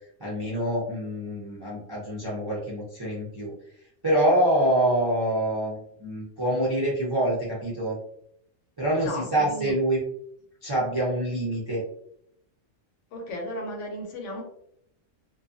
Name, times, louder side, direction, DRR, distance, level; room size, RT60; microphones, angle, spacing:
voice 1, 0.2-3.5 4.0-8.0 8.8-10.0 10.6-11.8, right 1 dB, 30° right, -6 dB, 0.4 m, -26 dB
voice 2, 9.0-9.7 13.1-14.4, left 1 dB, 70° left, 2 dB, 0.9 m, -35 dB
2.6 x 2.3 x 2.5 m, 0.71 s
omnidirectional pair, 1.4 m